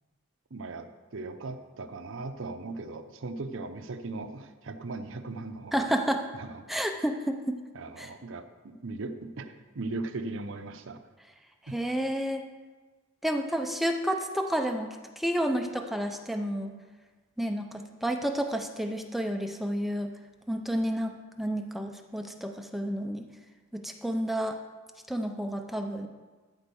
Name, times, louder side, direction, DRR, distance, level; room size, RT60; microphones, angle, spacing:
voice 1, 0.5-5.9 6.3-6.6 7.7-11.0 11.7-11.8, right 3 dB, 60° right, 8 dB, 0.7 m, -38 dB
voice 2, 5.7-6.3 6.7-7.5 8.0-8.1 11.7-12.4 13.2-14.9 15.2-16.7 17.4-20.1 20.5-21.1 21.4-23.2 23.7-24.6 25.1-26.1, equal, ahead, 4 dB, 0.5 m, -30 dB
13.0 x 4.6 x 7.0 m, 1.4 s
head